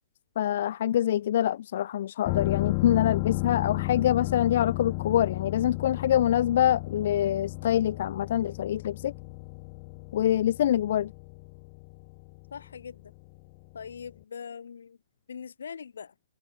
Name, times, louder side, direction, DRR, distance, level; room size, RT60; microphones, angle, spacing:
voice 1, 0.4-9.1 10.1-11.1, left 11 dB, 60° left, 1.0 m, -25 dB
sound 1, 2.2-13.8 14.1-14.2, left 34 dB, 40° left, 5.8 m, -34 dB
voice 2, 12.5-13.1 13.7-15.0 15.3-16.1, left 6 dB, 80° left, 4.1 m, -41 dB
hypercardioid pair, 135°, 0 cm